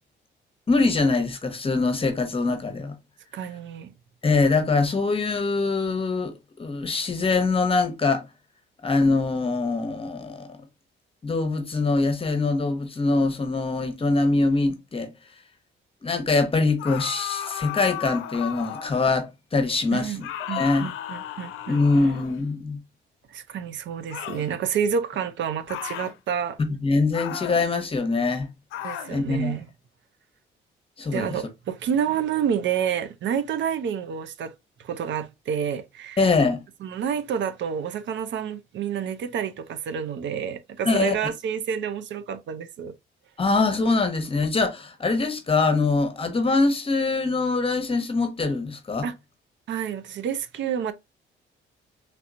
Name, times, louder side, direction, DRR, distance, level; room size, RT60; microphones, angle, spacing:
voice 1, 0.7-2.9 4.2-6.3 6.6-8.2 8.8-10.6 11.2-15.1 16.0-20.9 21.7-22.8 26.8-28.5 29.1-29.6 31.0-31.3 36.2-36.6 40.8-41.1 43.4-49.1, left 3 dB, 30° left, 0.9 m, -23 dB
voice 2, 3.3-3.9 19.9-20.2 20.5-21.8 23.3-26.6 28.8-29.7 31.1-34.5 34.8-36.2 36.8-42.9 49.0-49.1 49.7-50.9, right 8 dB, 70° right, 0.5 m, -29 dB
sound 1, 16.8-19.1 20.2-22.5 24.1-24.5 25.7-26.2 27.1-27.6 28.7-29.2, left 11 dB, 90° left, 0.5 m, -34 dB
3.3 x 2.9 x 2.4 m
cardioid pair, 90°, 20 cm